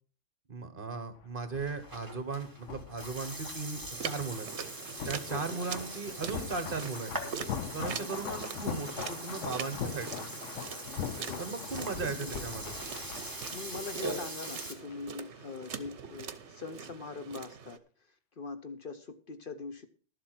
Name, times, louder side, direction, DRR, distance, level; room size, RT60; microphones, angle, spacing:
voice 1, 0.5-4.5 5.1-7.1 7.7-10.3 11.4-12.7, right 4 dB, 45° right, 10 dB, 1.5 m, -37 dB
sound 1, 1.2-15.0 15.2-15.4, left 8 dB, 75° left, 1.1 m, -42 dB
Burping eructation, 1.6-14.7, right 1 dB, 15° right, 1.9 m, -42 dB
sound 2, 3.9-17.8, right 7 dB, 70° right, 1.2 m, -43 dB
voice 2, 5.3-5.6 8.0-8.4 11.1-11.7 12.0-12.5 13.5-17.8 18.4-19.9, left 4 dB, 50° left, 10 dB, 1.0 m, -42 dB
12.0 x 7.7 x 5.9 m, 0.40 s
omnidirectional pair, 1.2 m